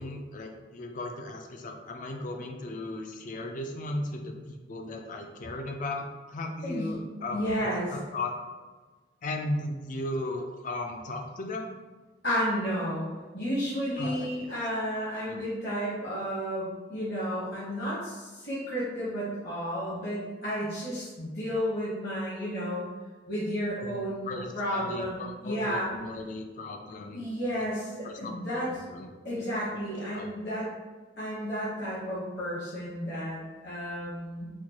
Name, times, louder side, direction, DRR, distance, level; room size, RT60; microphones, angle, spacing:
voice 1, 0.0-8.3 9.2-11.7 14.0-14.5 15.3-15.4 23.8-27.3 27.6-27.7 28.0-29.1 29.4-29.5 29.7-30.3, left 2 dB, 45° left, 3 dB, 0.4 m, -36 dB
voice 2, 6.6-6.9 7.3-7.9 12.2-22.8 23.3-24.3 24.5-25.9 27.1-28.7 29.2-30.7 31.2-34.5, equal, 60° left, -9 dB, 1.1 m, -32 dB
4.3 x 2.2 x 2.9 m, 1.3 s
head